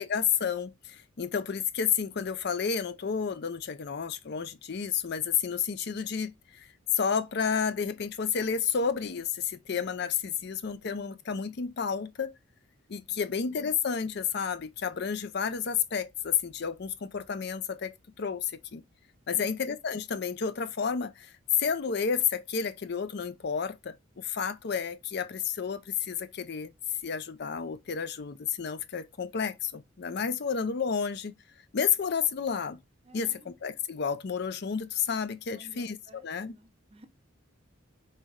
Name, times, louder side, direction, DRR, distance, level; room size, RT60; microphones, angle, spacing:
voice 1, 0.0-6.7 6.9-12.3 12.9-18.8 19.3-21.3 21.6-26.7 27.0-31.3 31.7-32.8 33.1-36.5, left 6 dB, 55° left, 0.5 m, -31 dB
voice 2, 19.3-19.6 33.0-33.5 35.5-37.1, right 1 dB, 30° right, 0.5 m, -54 dB
4.2 x 3.3 x 3.6 m
head